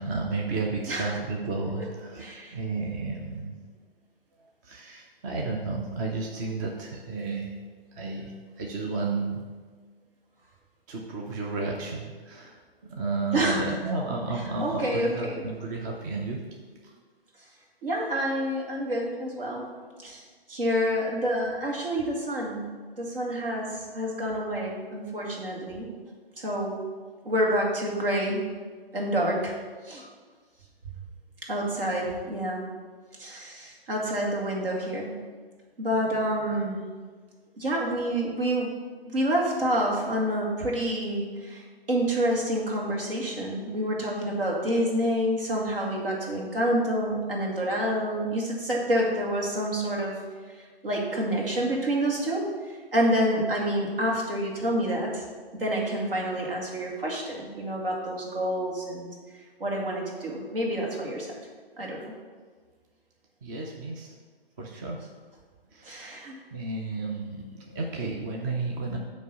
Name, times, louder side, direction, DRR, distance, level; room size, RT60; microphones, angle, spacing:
voice 1, 0.0-2.2 2.5-3.6 4.6-7.5 8.0-9.4 10.9-12.5 12.9-16.4 63.4-64.1 64.6-65.0 65.7-66.2 66.5-69.0, right 3 dB, 20° right, 0 dB, 0.5 m, -32 dB
voice 2, 0.9-1.2 2.2-2.6 13.3-13.8 14.3-15.4 17.8-19.6 20.0-20.2 20.5-25.9 26.4-26.8 27.2-28.4 28.9-29.5 29.8-30.1 31.5-32.6 33.2-35.2 35.8-36.8 37.6-38.7 39.1-50.2 50.8-55.2 55.5-59.1 59.6-61.3 61.8-62.1 65.8-66.4, equal, 65° right, -1 dB, 2.1 m, -28 dB
9.1 x 3.1 x 6.7 m, 1.5 s
figure-of-eight pair, 130°, 30 cm